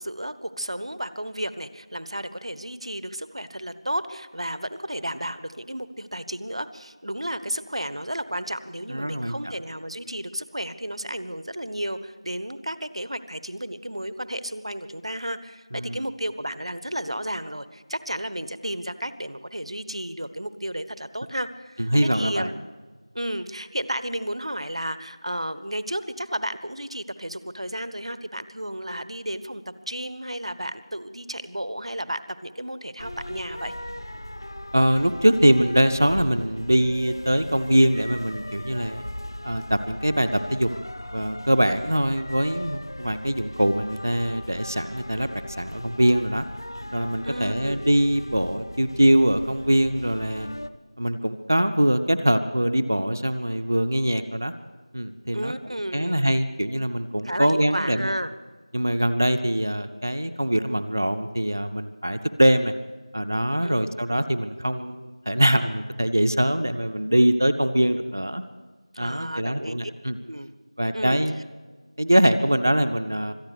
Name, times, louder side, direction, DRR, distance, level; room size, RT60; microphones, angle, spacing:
voice 1, 0.0-22.5 23.1-33.7 47.2-47.8 55.3-56.2 57.2-58.3 63.6-63.9 68.9-69.9 70.2-70.5 70.9-71.2, right 1 dB, 70° right, 13 dB, 1.2 m, -33 dB
voice 2, 8.9-9.4 15.7-16.0 21.8-22.5 34.7-39.0 39.4-40.7 41.1-46.4 46.9-50.5 51.0-54.5 54.9-55.5 55.9-58.1 58.7-62.7 63.1-68.4 69.0-70.2 70.8-71.3 72.0-73.3, right 1 dB, 30° right, 10 dB, 0.5 m, -23 dB
sound 1, 33.0-50.7, left 1 dB, 45° left, 0.7 m, -38 dB
25.0 x 8.7 x 6.6 m, 1.4 s
figure-of-eight pair, 175°, 3 cm